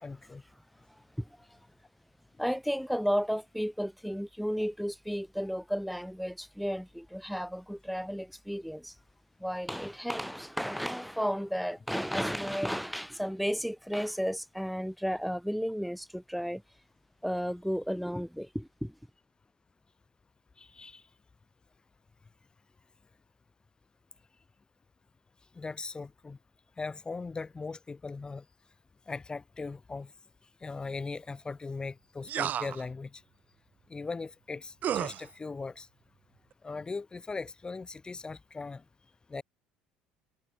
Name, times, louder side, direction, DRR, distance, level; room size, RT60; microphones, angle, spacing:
voice 1, 0.0-0.4 20.6-21.0 25.5-26.4 26.8-28.4 29.1-30.1 30.6-33.2 33.9-35.9 36.6-38.8 39.3-39.4, left 4 dB, 25° left, 1.1 m, -39 dB
voice 2, 2.4-8.9 9.4-16.6 17.2-18.9, equal, ahead, 1.0 m, -33 dB
sound 1, 32.3-32.8 34.8-35.2, right 10 dB, 50° right, 1.0 m, -31 dB
hypercardioid pair, 70°, 4 cm